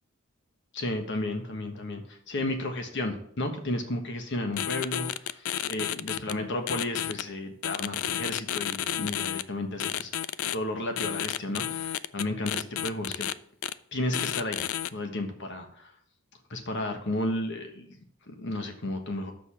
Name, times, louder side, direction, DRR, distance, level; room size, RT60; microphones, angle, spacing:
voice 1, 0.7-10.1 10.5-13.3 13.9-14.6 14.9-15.9 16.5-18.0 18.3-19.3, left 1 dB, 60° left, 5 dB, 1.3 m, -33 dB
sound 1, 4.6-6.3 6.7-7.2 7.6-9.4 9.8-10.6 11.0-13.3 13.6-13.7 14.1-14.9, left 11 dB, 80° left, 0.4 m, -31 dB
6.6 x 5.4 x 7.1 m, 0.66 s
head